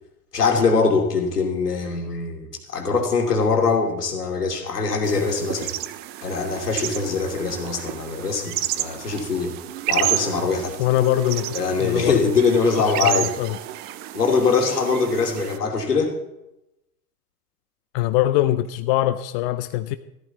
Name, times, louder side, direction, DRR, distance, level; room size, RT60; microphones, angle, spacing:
voice 1, 0.3-5.7 6.2-9.5 9.9-10.7 11.5-13.3 14.1-16.1, left 4 dB, 75° left, 2 dB, 2.7 m, -22 dB
sound 1, 5.0-15.6, right 14 dB, 20° right, 0.4 m, -31 dB
voice 2, 10.8-12.4 13.0-13.6 17.9-20.0, left 14 dB, 40° left, 11 dB, 0.6 m, -22 dB
14.0 x 13.0 x 4.0 m, 0.90 s
figure-of-eight pair, 90°, 47 cm